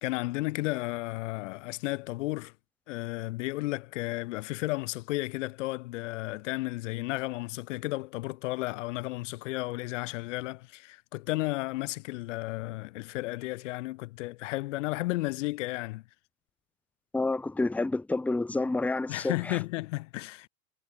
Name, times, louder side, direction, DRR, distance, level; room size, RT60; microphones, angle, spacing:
voice 1, 0.0-2.5 2.9-16.0 19.1-20.5, left 20 dB, 55° left, 0.9 m, -33 dB
voice 2, 17.1-19.6, left 2 dB, 5° left, 0.9 m, -29 dB
hypercardioid pair, 105°, 44 cm